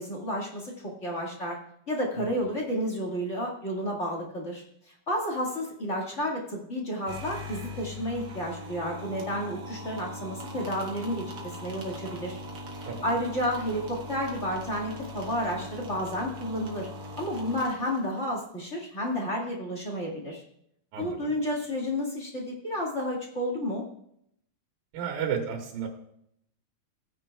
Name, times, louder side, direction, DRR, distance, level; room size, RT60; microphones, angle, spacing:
voice 1, 0.0-1.6 1.9-4.6 5.1-12.4 13.0-16.9 17.2-20.4 21.0-23.8, equal, 30° left, -2 dB, 1.6 m, -31 dB
sound 1, 7.0-18.4, left 1 dB, 50° right, 1.7 m, -40 dB
voice 2, 24.9-25.9, right 7 dB, 80° right, 1 dB, 2.9 m, -32 dB
17.0 x 9.7 x 2.3 m, 0.73 s
omnidirectional pair, 3.9 m